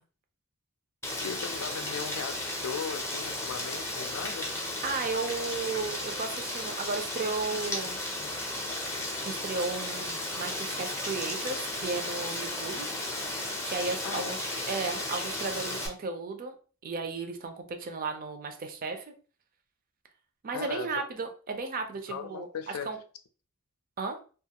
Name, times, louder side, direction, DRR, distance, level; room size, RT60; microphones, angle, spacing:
Rain, 1.0-15.9, left 1 dB, 10° left, 0.5 m, -34 dB
voice 1, 1.2-4.5 14.0-14.4 20.5-21.1 22.1-23.0, left 6 dB, 80° left, 0.4 m, -38 dB
voice 2, 4.8-8.0 9.2-12.9 13.7-14.4 14.7-16.5 16.8-19.1 20.4-22.5 22.9-23.0 24.0-24.2, right 4 dB, 40° right, 0.5 m, -34 dB
2.4 x 2.4 x 2.8 m
head